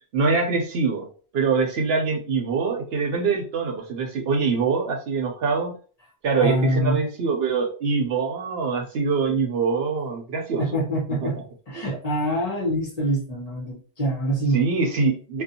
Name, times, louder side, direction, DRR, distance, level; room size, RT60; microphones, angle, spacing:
voice 1, 0.1-1.1 1.3-5.7 6.2-10.6 11.2-11.3 14.5-15.4, right 4 dB, 70° right, 2 dB, 0.8 m, -24 dB
voice 2, 6.4-7.0 10.6-11.4 11.7-14.6, right 1 dB, 40° left, -4 dB, 0.9 m, -25 dB
2.5 x 2.2 x 2.6 m, 0.40 s
omnidirectional pair, 1.1 m